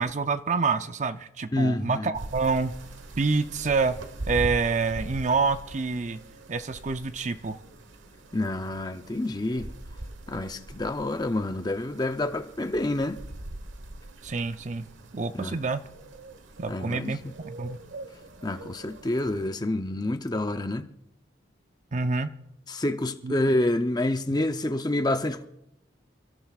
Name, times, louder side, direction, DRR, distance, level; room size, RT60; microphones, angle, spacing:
voice 1, 0.0-2.7 3.2-4.0 4.3-6.2 6.5-7.6 14.2-14.8 15.1-15.8 16.6-17.8 21.9-22.3 23.2-23.3, right 4 dB, 40° right, 0.5 m, -27 dB
voice 2, 1.5-2.1 8.3-9.7 10.3-13.2 15.3-15.6 16.7-17.2 18.4-20.9 22.7-25.5, left 1 dB, 20° left, 0.6 m, -28 dB
sound 1, 2.1-19.5, right 1 dB, 85° right, 1.3 m, -42 dB
29.0 x 13.5 x 2.4 m
head